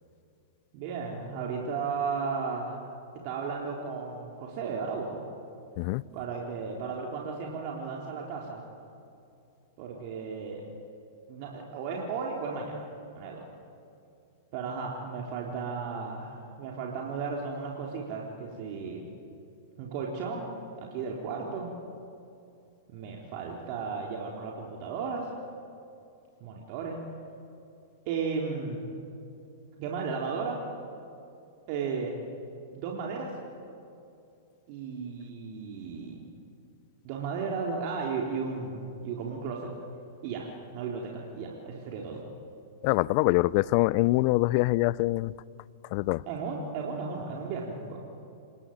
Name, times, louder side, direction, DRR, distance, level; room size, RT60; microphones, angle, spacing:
voice 1, 0.7-2.8 3.2-5.3 6.1-8.6 9.8-10.6 11.3-12.9 13.1-13.5 14.5-19.0 19.8-21.7 22.9-25.3 26.4-27.0 28.1-28.8 29.8-30.6 31.7-32.1 32.7-33.3 34.7-36.3 37.0-39.7 40.2-40.5 40.7-42.2 46.3-48.0, right 5 dB, 50° right, -1 dB, 3.9 m, -34 dB
voice 2, 42.8-45.3 45.9-46.2, left 20 dB, 50° left, 22 dB, 0.6 m, -24 dB
27.5 x 21.5 x 8.8 m, 2.6 s
hypercardioid pair, 105°, 0 cm